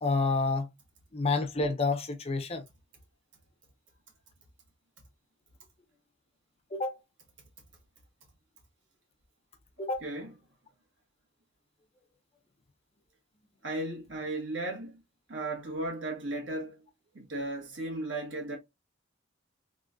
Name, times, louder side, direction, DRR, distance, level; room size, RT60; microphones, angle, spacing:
voice 1, 0.0-0.7 1.1-2.6 6.7-6.9 9.8-10.1, left 3 dB, 30° left, 0.6 m, -29 dB
voice 2, 13.6-15.0 15.3-16.8 17.1-18.6, right 2 dB, 65° right, 1.6 m, -35 dB
3.6 x 3.4 x 2.5 m
head